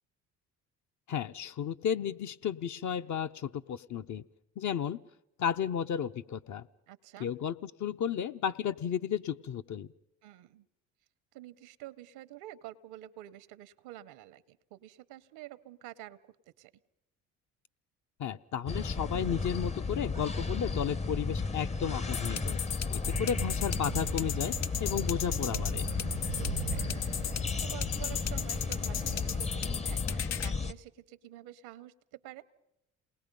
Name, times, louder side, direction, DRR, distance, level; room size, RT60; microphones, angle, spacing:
voice 1, 1.1-4.2 4.6-5.0 5.4-6.7 7.2-9.9 18.2-22.6 22.9-25.9, left 8 dB, 50° left, 9 dB, 0.7 m, -33 dB
voice 2, 6.9-7.3 10.2-10.7 11.3-16.7 26.3-32.4, right 14 dB, 70° right, 15 dB, 0.9 m, -49 dB
sound 1, 18.7-30.7, left 4 dB, 15° left, 0.7 m, -34 dB
sound 2, 22.1-30.5, left 9 dB, 80° left, 0.9 m, -37 dB
Thunder / Rain, 23.0-29.7, right 14 dB, 90° right, 1.2 m, -43 dB
28.0 x 19.5 x 5.3 m, 0.81 s
hypercardioid pair, 60°, 39 cm